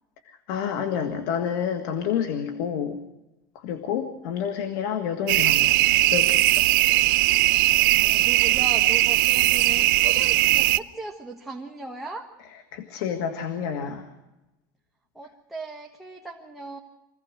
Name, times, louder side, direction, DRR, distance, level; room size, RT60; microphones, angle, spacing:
voice 1, 0.3-3.0 3.6-5.8 6.1-6.7 12.7-14.1, left 8 dB, 75° left, 7 dB, 1.9 m, -29 dB
sound 1, 5.3-10.8, right 17 dB, 85° right, 0.7 m, -19 dB
voice 2, 7.9-12.3 15.1-16.8, right 2 dB, ahead, -1 dB, 1.4 m, -38 dB
24.5 x 16.5 x 6.4 m, 1.0 s
supercardioid pair, 140°, 11 cm